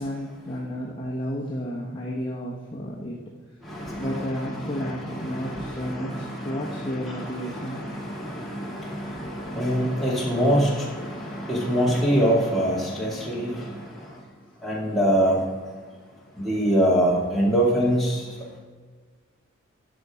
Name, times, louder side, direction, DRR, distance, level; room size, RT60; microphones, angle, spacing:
voice 1, 0.0-3.2 4.0-7.8, equal, 25° left, -4 dB, 1.0 m, -32 dB
voice 2, 3.7-13.7 14.6-15.4 16.4-18.2, equal, ahead, -5 dB, 2.2 m, -25 dB
11.0 x 7.0 x 4.9 m, 1.5 s
head